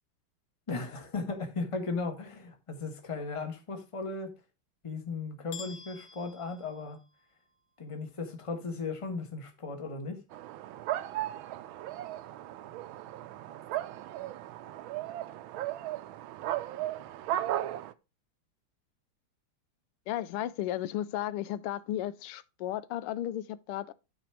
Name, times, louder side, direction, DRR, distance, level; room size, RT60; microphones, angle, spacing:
voice 1, 0.7-4.3 4.8-7.0 7.8-10.2, left 3 dB, 20° left, 1.1 m, -36 dB
sound 1, 5.5-7.5, left 6 dB, 40° left, 1.2 m, -48 dB
sound 2, 10.3-17.9, right 13 dB, 75° right, 1.3 m, -36 dB
voice 2, 20.1-23.9, left 12 dB, 90° left, 1.5 m, -34 dB
12.5 x 4.3 x 4.6 m
omnidirectional pair, 2.4 m